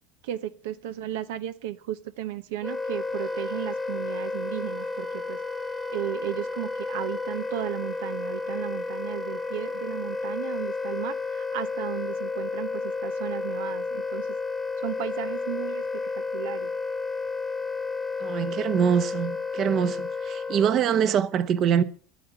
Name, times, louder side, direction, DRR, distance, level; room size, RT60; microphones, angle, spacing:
voice 1, 0.2-5.4 5.9-14.3 14.8-16.7, right 13 dB, 85° right, 0.9 m, -35 dB
Wind instrument woodwind instrument, 2.6-20.8, left 3 dB, 10° left, 1.0 m, -32 dB
voice 2, 18.2-21.8, right 8 dB, 45° right, 1.0 m, -24 dB
11.5 x 9.4 x 8.0 m
supercardioid pair, 130°, 0 cm